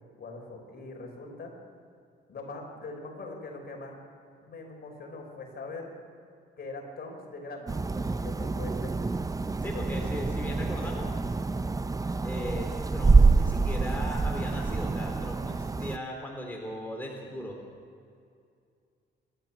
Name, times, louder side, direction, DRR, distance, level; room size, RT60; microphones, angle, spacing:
voice 1, 0.2-1.6 2.3-4.0 4.4-5.9 6.6-8.9 9.7-10.1, left 3 dB, 50° left, 1 dB, 5.7 m, -42 dB
sound 1, 7.7-16.0, right 3 dB, 15° right, 0.6 m, -26 dB
voice 2, 9.6-11.1 12.2-17.6, left 1 dB, 10° left, 0 dB, 3.6 m, -38 dB
28.0 x 12.5 x 7.4 m, 2.4 s
cardioid pair, 90°, 20 cm